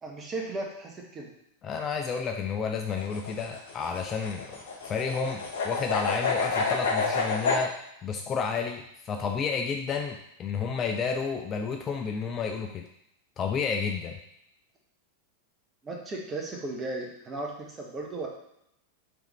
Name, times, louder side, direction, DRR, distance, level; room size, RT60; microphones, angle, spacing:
voice 1, 0.0-1.3 15.8-18.3, right 2 dB, 20° right, -1 dB, 0.8 m, -36 dB
voice 2, 1.6-4.6 4.8-12.8 13.4-14.2, left 5 dB, 25° left, 4 dB, 0.3 m, -31 dB
sound 1, 2.9-7.6, left 4 dB, 55° left, 0.8 m, -29 dB
3.4 x 3.4 x 3.0 m, 0.78 s
figure-of-eight pair, 90°, 0 cm